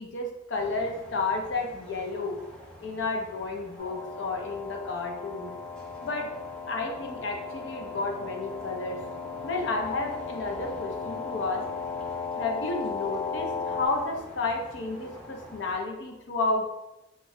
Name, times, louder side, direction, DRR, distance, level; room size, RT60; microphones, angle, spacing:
voice 1, 0.0-2.4 2.8-5.5 6.0-6.3 6.7-9.0 9.4-11.7 12.4-16.7, left 3 dB, 65° left, 2 dB, 0.6 m, -31 dB
sound 1, 0.5-15.7, equal, 5° left, 0.6 m, -47 dB
sound 2, 3.8-13.9, left 5 dB, 45° left, 1.2 m, -36 dB
3.5 x 2.3 x 3.1 m, 0.97 s
head